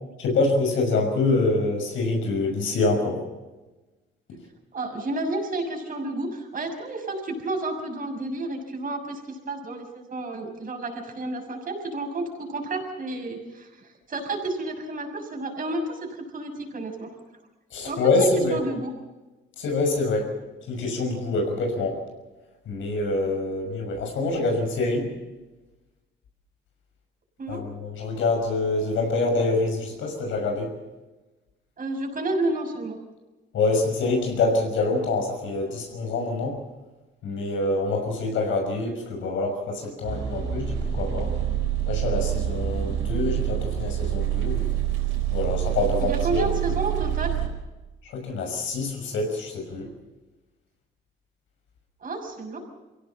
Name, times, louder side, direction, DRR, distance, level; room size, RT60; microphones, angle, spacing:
voice 1, 0.2-3.2 17.7-18.6 19.6-20.3 20.7-22.0 22.7-25.1 27.5-30.7 33.5-36.6 37.2-41.3 41.9-44.8 45.3-46.5 48.0-49.9, left 3 dB, 80° left, 2 dB, 6.1 m, -25 dB
voice 2, 4.7-17.2 17.8-18.9 27.4-27.7 31.8-33.0 46.0-47.3 52.0-52.6, right 2 dB, 45° right, 3 dB, 6.4 m, -31 dB
sound 1, 40.0-47.5, right 11 dB, 90° right, 4.5 m, -26 dB
24.0 x 17.0 x 7.7 m, 1.1 s
cardioid pair, 90°, 20 cm